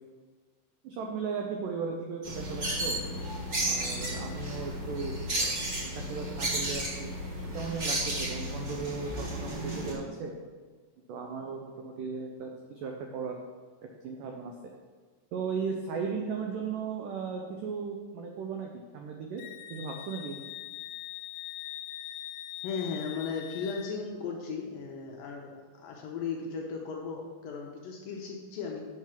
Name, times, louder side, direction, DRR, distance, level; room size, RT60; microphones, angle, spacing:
voice 1, 0.8-3.0 3.6-5.6 5.8-7.1 7.5-10.3 11.1-13.4 14.0-14.5 15.3-19.4 19.7-20.5, right 5 dB, 85° right, 2 dB, 1.9 m, -36 dB
sound 1, 2.2-9.9, right 1 dB, 45° right, 1.2 m, -33 dB
Wind instrument woodwind instrument, 19.4-23.9, left 14 dB, 90° left, 2.8 m, -42 dB
voice 2, 22.6-25.5 25.8-28.8, left 5 dB, 70° left, 0 dB, 2.3 m, -36 dB
8.5 x 6.3 x 6.0 m, 1.5 s
omnidirectional pair, 4.9 m